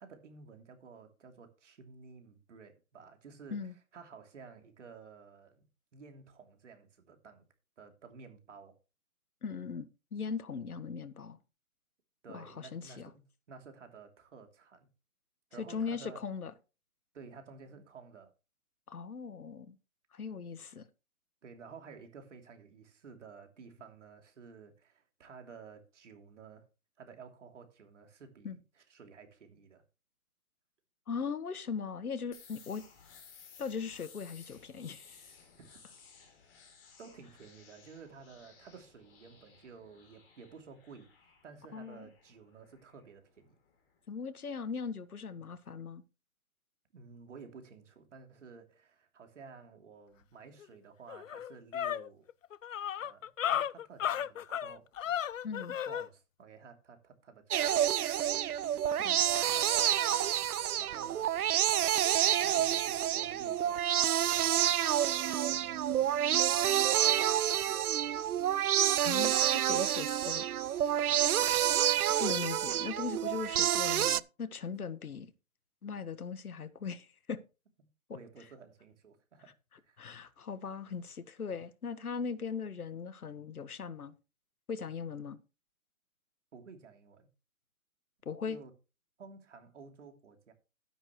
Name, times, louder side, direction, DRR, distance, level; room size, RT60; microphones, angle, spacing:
voice 1, 0.0-5.6 5.9-7.4 7.8-8.8 12.2-14.9 15.5-16.2 17.1-18.3 21.4-26.7 27.0-29.8 35.6-35.9 37.0-41.1 41.4-43.6 46.9-52.2 53.0-54.9 55.7-59.1 60.1-60.5 60.8-61.4 62.4-68.1 71.1-71.3 78.1-79.5 79.8-80.0 86.5-87.3 88.5-88.7 89.2-90.5, right 5 dB, 55° right, 3.0 m, -53 dB
voice 2, 9.4-11.4 12.3-13.1 15.6-16.5 18.9-19.8 20.1-20.9 28.4-28.6 31.1-32.8 33.6-35.2 41.7-42.1 44.1-46.0 55.4-55.8 59.0-59.2 69.0-70.5 72.2-75.3 75.8-77.4 80.0-84.1 84.7-85.4 88.2-88.6, left 5 dB, 85° left, 1.4 m, -39 dB
sound 1, 32.3-43.9, left 6 dB, 20° left, 3.4 m, -58 dB
sound 2, 50.6-50.7 51.1-56.1, left 10 dB, 65° left, 0.6 m, -34 dB
sound 3, 57.5-74.2, right 11 dB, 85° right, 0.6 m, -28 dB
12.5 x 10.0 x 3.1 m
hypercardioid pair, 160°, 43 cm